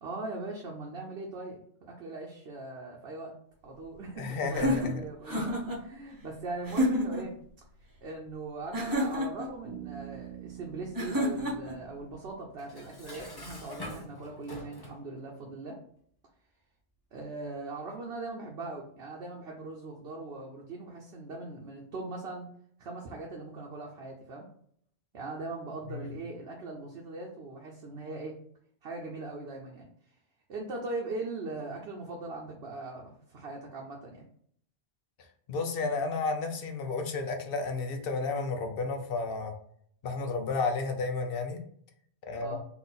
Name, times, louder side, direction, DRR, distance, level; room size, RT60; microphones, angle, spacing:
voice 1, 0.0-3.4 3.6-7.3 8.0-15.8 17.1-22.5 22.8-24.4 25.1-28.4 28.8-29.9 30.5-34.2 42.3-42.6, right 2 dB, 65° right, -1 dB, 0.9 m, -40 dB
voice 2, 4.2-5.0 25.9-26.1 35.5-39.5 40.0-41.6 42.3-42.6, left 3 dB, 60° left, 5 dB, 0.8 m, -32 dB
sound 1, 4.5-5.8 6.6-7.3 8.7-9.5 10.9-11.8, equal, 20° right, 0.9 m, -29 dB
Bass guitar, 9.6-13.3, right 12 dB, 85° right, 1.2 m, -47 dB
Dishes pots and pans, 12.6-15.0, left 1 dB, 25° left, 0.6 m, -44 dB
4.0 x 2.5 x 3.9 m, 0.63 s
omnidirectional pair, 1.2 m